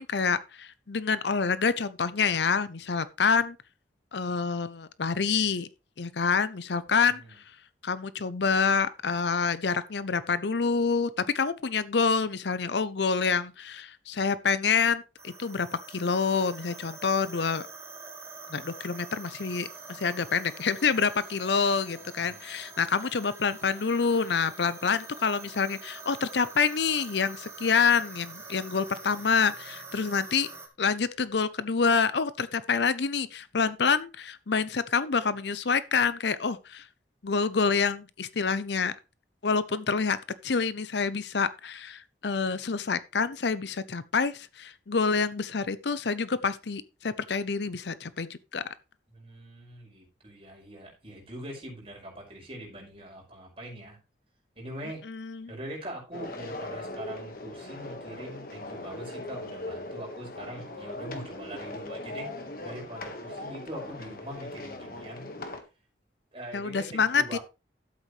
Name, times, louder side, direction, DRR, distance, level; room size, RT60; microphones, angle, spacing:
voice 1, 0.0-3.6 4.1-5.7 6.0-7.2 7.8-17.6 18.5-30.5 30.8-36.8 37.2-38.9 39.4-40.2 40.4-48.6 55.1-55.5 66.5-67.4, left 5 dB, 70° left, 0.7 m, -27 dB
voice 2, 6.9-7.4 22.2-23.1 49.1-54.0 54.6-55.0 55.5-62.3 62.6-65.6 66.3-67.4, right 1 dB, 30° right, 5.3 m, -43 dB
sound 1, 15.2-30.7, right 3 dB, 15° right, 1.7 m, -45 dB
sound 2, 56.1-65.6, left 1 dB, 50° left, 1.6 m, -39 dB
12.0 x 8.2 x 3.2 m
head